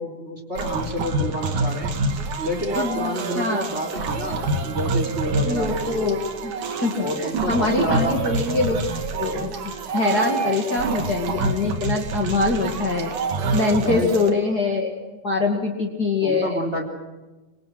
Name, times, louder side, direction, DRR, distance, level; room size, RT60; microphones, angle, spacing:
voice 1, 0.0-1.9 2.4-5.9 7.0-8.2 10.4-10.5 13.8-14.1 16.2-16.8, equal, 20° right, 3 dB, 4.0 m, -28 dB
sound 1, 0.6-14.3, right 3 dB, 70° right, 3.6 m, -27 dB
voice 2, 2.7-3.1 3.3-3.7 5.4-6.5 6.8-8.8 9.1-9.5 9.9-13.1 13.5-14.9 15.2-16.6, left 3 dB, 30° left, 1 dB, 2.6 m, -23 dB
25.5 x 25.5 x 6.3 m, 1.2 s
omnidirectional pair, 3.6 m